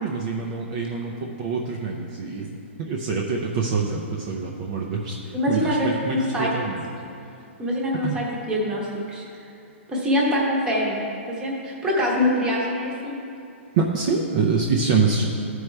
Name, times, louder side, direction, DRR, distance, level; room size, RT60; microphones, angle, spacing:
voice 1, 0.0-2.5 2.8-6.8 8.0-8.2 13.7-15.3, right 4 dB, 35° right, -1 dB, 0.6 m, -25 dB
voice 2, 5.3-6.5 7.6-9.2 9.9-13.2, left 1 dB, 10° right, -3 dB, 1.0 m, -24 dB
13.5 x 4.6 x 3.3 m, 2.6 s
hypercardioid pair, 160°, 7 cm